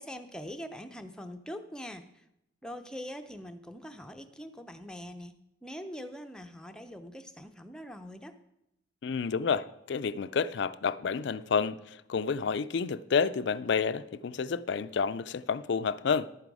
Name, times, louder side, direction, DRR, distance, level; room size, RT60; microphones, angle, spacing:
voice 1, 0.0-2.2 2.6-5.3 5.6-8.4, equal, 5° left, 0.6 m, -43 dB
voice 2, 9.0-16.3, left 5 dB, 60° left, 0.4 m, -30 dB
11.5 x 9.1 x 4.8 m
head